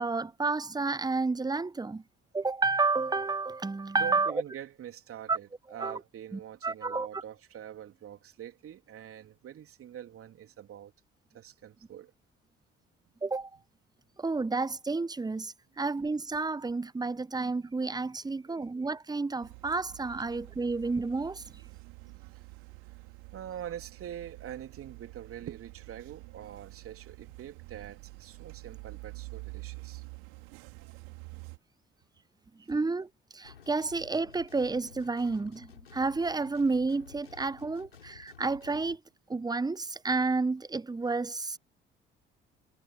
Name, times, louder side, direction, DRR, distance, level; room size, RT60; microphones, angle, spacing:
voice 1, 0.0-2.0 2.3-4.4 5.3-5.4 5.8-6.0 6.3-7.2 13.2-13.5 14.2-21.4 32.7-39.0 39.3-41.6, right 3 dB, 15° right, 1.1 m, -30 dB
voice 2, 4.0-10.9 11.3-12.1 22.2-22.3 23.3-30.0 30.8-30.9, right 10 dB, 50° right, 3.3 m, -44 dB
sound 1, 19.4-31.6, right 33 dB, 65° right, 3.7 m, -48 dB
sound 2, 33.4-39.0, left 7 dB, 85° left, 7.5 m, -53 dB
figure-of-eight pair, 45°, 29 cm